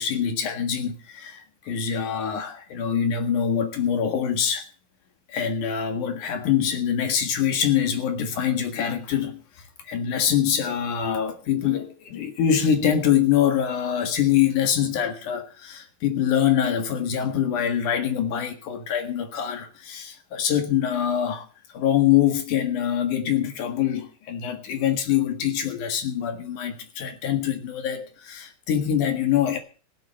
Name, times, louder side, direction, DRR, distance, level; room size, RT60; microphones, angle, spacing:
voice 1, 0.0-4.7 5.3-9.4 9.8-21.5 21.7-29.6, left 9 dB, 65° left, 3.1 m, -24 dB
17.0 x 7.6 x 7.7 m
omnidirectional pair, 3.9 m